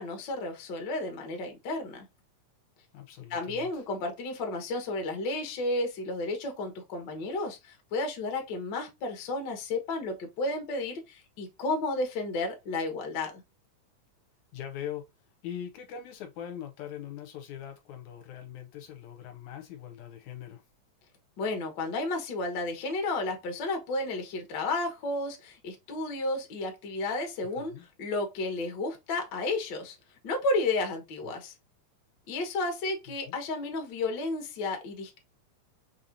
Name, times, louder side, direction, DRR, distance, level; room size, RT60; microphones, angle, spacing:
voice 1, 0.0-2.1 3.3-13.4 21.4-30.0 30.2-31.5 32.3-35.2, left 2 dB, 60° left, 1.2 m, -32 dB
voice 2, 2.9-3.8 14.5-15.1 15.4-20.6 27.5-27.9 33.3-33.4, left 10 dB, 75° left, 1.9 m, -41 dB
5.4 x 2.8 x 2.5 m
omnidirectional pair, 3.5 m